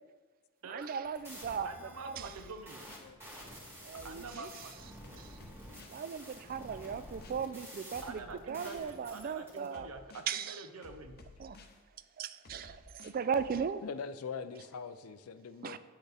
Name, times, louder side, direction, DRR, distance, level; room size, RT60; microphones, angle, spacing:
sound 1, 0.7-9.7, equal, 10° right, 1.7 m, -50 dB
voice 1, 0.7-1.7 2.0-2.3 3.8-4.5 5.2-5.4 5.9-8.2 8.5-9.9 10.3-10.6 11.4-11.6 12.2-13.8 15.6-15.8, right 6 dB, 40° right, 13 dB, 0.3 m, -37 dB
voice 2, 1.6-2.8 3.9-4.7 6.7-6.8 8.0-11.2, right 3 dB, 90° right, 7 dB, 0.7 m, -46 dB
sound 2, 2.1-3.1 3.9-4.5 5.0-6.0 6.8-7.3 7.9-8.9 9.7-10.3 10.8-11.8 12.4-13.6, left 3 dB, 45° left, 0.7 m, -55 dB
voice 3, 13.8-15.8, left 5 dB, 80° left, 13 dB, 0.4 m, -42 dB
8.3 x 6.4 x 3.4 m, 1.3 s
head